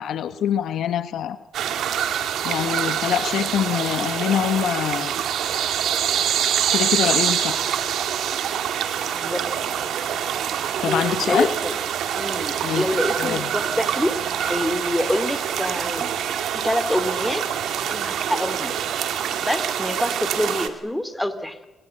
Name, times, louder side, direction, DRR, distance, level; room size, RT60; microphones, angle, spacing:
voice 1, 0.0-1.4 2.4-5.1 6.7-7.7 10.8-11.5 12.6-12.8 13.2-13.5, left 9 dB, 75° left, 11 dB, 1.2 m, -24 dB
sound 1, 1.5-20.7, right 9 dB, 75° right, 2.2 m, -25 dB
voice 2, 9.1-9.4 10.8-11.8 12.1-16.1 16.5-17.4 17.9-18.8 19.4-21.7, left 1 dB, 5° left, 11 dB, 2.7 m, -26 dB
26.0 x 22.0 x 7.8 m, 1.1 s
cardioid pair, 90°, 0 cm